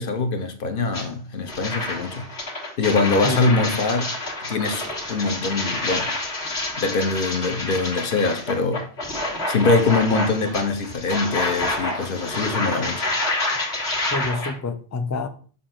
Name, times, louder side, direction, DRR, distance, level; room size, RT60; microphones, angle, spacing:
voice 1, 0.0-2.2 2.8-4.1 4.5-4.8 5.1-6.1 6.8-8.8 9.5-13.0, left 3 dB, 55° left, 1.0 m, -23 dB
sound 1, 0.9-1.0 1.5-14.5, left 2 dB, 85° left, 2.0 m, -28 dB
voice 2, 3.2-3.8 14.1-15.3, left 3 dB, 30° left, 0.3 m, -27 dB
6.9 x 2.6 x 5.7 m
omnidirectional pair, 1.1 m